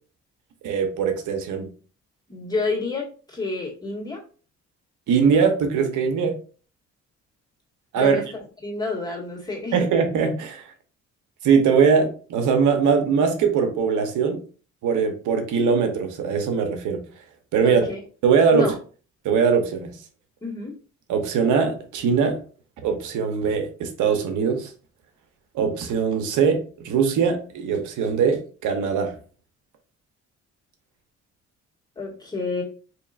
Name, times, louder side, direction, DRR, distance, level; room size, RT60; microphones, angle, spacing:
voice 1, 0.6-1.7 5.1-6.4 7.9-8.2 9.7-10.7 11.4-14.4 14.8-17.0 17.5-17.9 18.2-18.7 19.2-20.0 21.1-22.4 22.8-24.7 25.5-29.1, right 6 dB, 80° right, 0.8 m, -21 dB
voice 2, 2.3-4.2 7.9-8.2 8.6-9.8 17.6-18.0 18.5-18.7 20.4-20.7 31.9-32.6, left 3 dB, 15° left, 1.7 m, -29 dB
4.4 x 2.9 x 2.4 m
cardioid pair, 90°, 30 cm